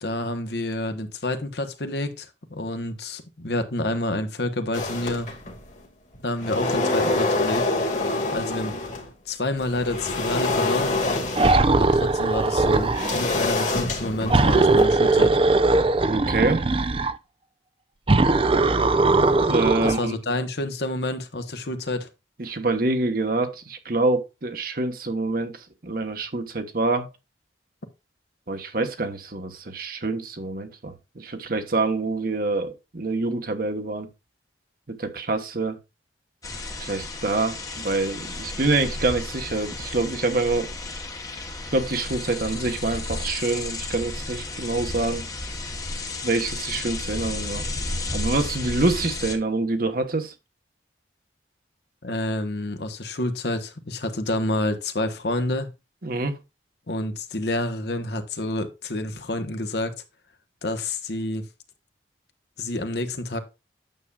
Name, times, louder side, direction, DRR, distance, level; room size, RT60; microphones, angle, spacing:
voice 1, 0.0-5.3 6.2-7.6 8.3-8.7 9.3-10.9 11.7-15.3 19.8-22.1 52.0-55.7 56.9-59.9 60.6-61.4 62.6-63.4, left 1 dB, 65° left, 1.2 m, -28 dB
sound 1, 4.7-5.7 6.1-9.1 9.6-15.1, left 2 dB, 40° left, 1.9 m, -27 dB
sound 2, 11.4-13.2 14.3-17.2 18.1-20.0, right 3 dB, 30° right, 0.5 m, -20 dB
voice 2, 16.1-16.6 19.5-20.1 22.4-25.5 25.8-27.1 28.5-34.1 34.9-35.8 36.8-40.7 41.7-45.2 46.2-47.6 48.1-50.3 56.0-56.4, right 3 dB, 50° right, 1.2 m, -26 dB
sound 3, 36.4-49.4, left 2 dB, 20° left, 1.1 m, -33 dB
9.1 x 7.0 x 2.4 m
head